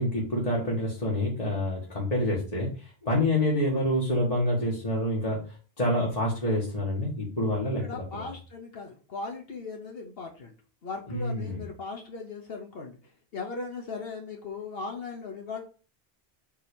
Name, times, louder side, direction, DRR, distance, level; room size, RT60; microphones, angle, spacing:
voice 1, 0.0-8.3 11.1-11.6, left 1 dB, 40° left, -5 dB, 1.7 m, -27 dB
voice 2, 7.8-10.5 10.8-13.0 13.3-15.6, left 4 dB, 70° left, 1 dB, 1.3 m, -38 dB
7.4 x 3.0 x 5.3 m, 0.37 s
omnidirectional pair, 1.0 m